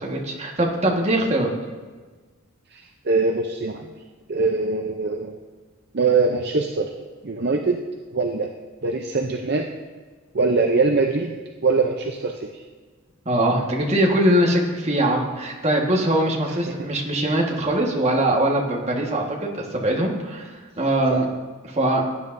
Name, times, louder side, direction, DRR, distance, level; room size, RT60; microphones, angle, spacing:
voice 1, 0.0-1.5 13.2-20.5 20.8-21.2 21.6-22.0, right 1 dB, 30° right, -1 dB, 1.5 m, -22 dB
voice 2, 2.7-3.9 4.3-5.3 5.9-6.9 7.2-7.8 8.1-8.5 8.8-9.7 10.3-11.3 11.6-12.6 16.7-16.8 21.1-21.2, right 3 dB, 50° right, 3 dB, 0.6 m, -22 dB
17.5 x 9.4 x 2.6 m, 1.4 s
head